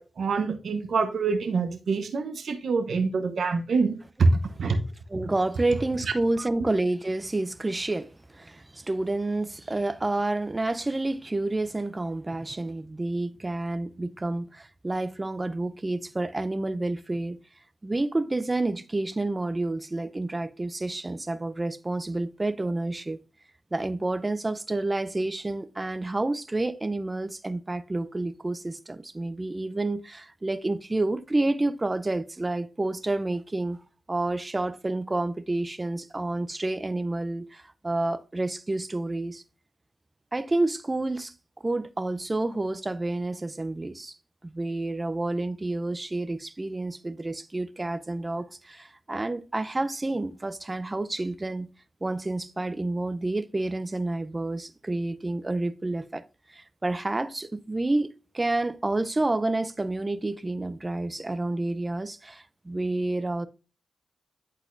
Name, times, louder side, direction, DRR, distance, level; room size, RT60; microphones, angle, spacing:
voice 1, 0.0-4.3 4.6-4.8, right 4 dB, 75° right, 0.8 m, -25 dB
voice 2, 5.1-17.4 17.8-23.2 23.7-33.8 34.1-39.4 40.3-44.2 44.4-51.7 52.0-56.2 56.5-63.5, right 2 dB, 25° right, 0.5 m, -29 dB
10.5 x 4.1 x 2.5 m
cardioid pair, 60°, 0 cm